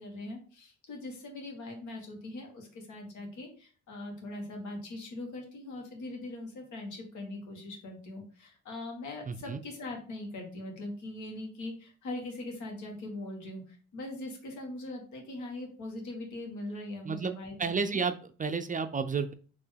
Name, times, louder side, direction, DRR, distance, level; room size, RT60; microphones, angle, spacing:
voice 1, 0.0-18.0, left 2 dB, 75° left, 1 dB, 1.7 m, -41 dB
voice 2, 9.3-9.6 17.0-17.3 17.6-19.3, right 5 dB, 30° right, 9 dB, 0.4 m, -31 dB
4.4 x 3.0 x 3.3 m, 0.40 s
cardioid pair, 90°, 30 cm